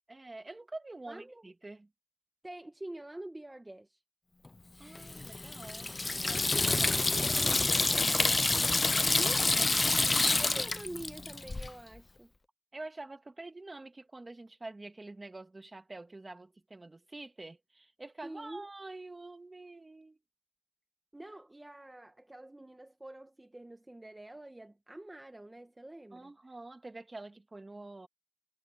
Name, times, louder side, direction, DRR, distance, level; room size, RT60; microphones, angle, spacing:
voice 1, 0.1-1.9 4.8-8.5 9.8-10.3 12.7-20.2 26.1-28.1, right 2 dB, 60° right, 2.8 m, -47 dB
voice 2, 1.1-1.4 2.4-4.0 9.2-9.7 10.4-12.3 18.2-18.7 21.1-26.3, right 1 dB, 35° right, 1.6 m, -46 dB
Water tap faucet / Sink (filling or washing), 4.9-11.7, left 2 dB, 65° left, 0.4 m, -28 dB
wide cardioid pair, 50°, 0 cm